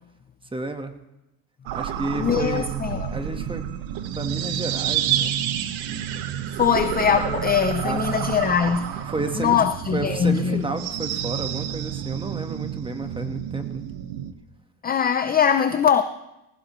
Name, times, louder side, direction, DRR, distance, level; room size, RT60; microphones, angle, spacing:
voice 1, 0.5-0.9 1.7-2.7 3.1-3.7 4.2-5.3 7.8-8.2 9.1-9.6 9.9-13.8, right 2 dB, 10° right, 1.3 m, -31 dB
sound 1, 1.7-14.3, right 10 dB, 70° right, 1.3 m, -29 dB
voice 2, 2.2-3.1 6.6-9.1 9.4-10.7 14.8-16.0, left 8 dB, 20° left, 0.5 m, -22 dB
20.5 x 18.0 x 3.1 m
cardioid pair, 125°, 47 cm